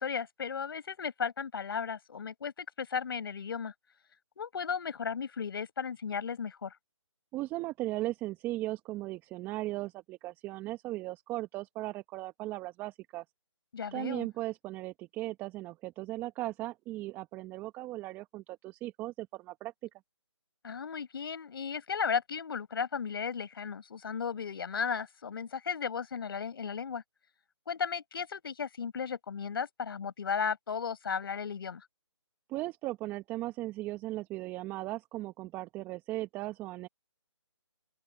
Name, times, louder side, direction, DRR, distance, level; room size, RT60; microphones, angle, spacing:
voice 1, 0.0-3.7 4.4-6.7 13.7-14.3 20.6-27.0 27.7-31.8, left 6 dB, 50° left, 5.2 m, -35 dB
voice 2, 7.3-13.2 13.9-19.7 32.5-36.9, right 17 dB, 10° right, 1.0 m, -37 dB
open air
figure-of-eight pair, 150°, 16 cm